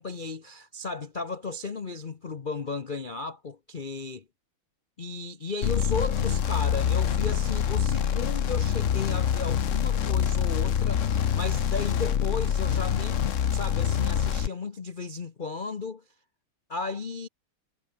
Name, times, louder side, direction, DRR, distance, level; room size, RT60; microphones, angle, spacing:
voice 1, 0.0-4.2 5.0-16.0 16.7-17.3, left 4 dB, 70° left, 0.4 m, -35 dB
sound 1, 5.6-14.5, left 8 dB, 50° left, 1.0 m, -25 dB
omnidirectional pair, 2.4 m